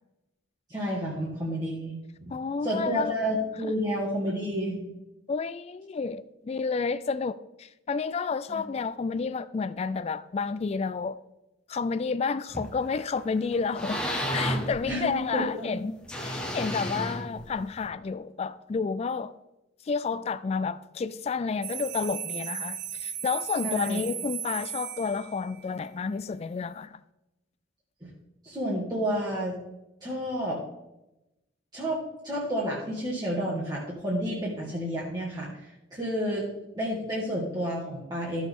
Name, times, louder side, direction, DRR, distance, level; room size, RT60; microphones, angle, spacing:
voice 1, 0.7-2.0 2.6-4.8 8.5-8.6 14.9-15.8 23.6-24.0 28.0-28.1 28.4-29.5 30.0-30.6 31.7-36.5 36.8-38.5, equal, 20° right, 1.8 m, -30 dB
voice 2, 2.3-3.1 3.6-3.7 5.3-11.2 11.7-14.0 14.3-15.9 16.2-19.3 19.9-27.0, left 5 dB, 35° left, 0.3 m, -30 dB
sound 1, 12.5-13.1 13.5-15.4 16.0-17.9, equal, 5° left, 1.3 m, -32 dB
sound 2, 21.6-25.6, right 9 dB, 55° right, 0.5 m, -36 dB
14.0 x 6.3 x 3.6 m
head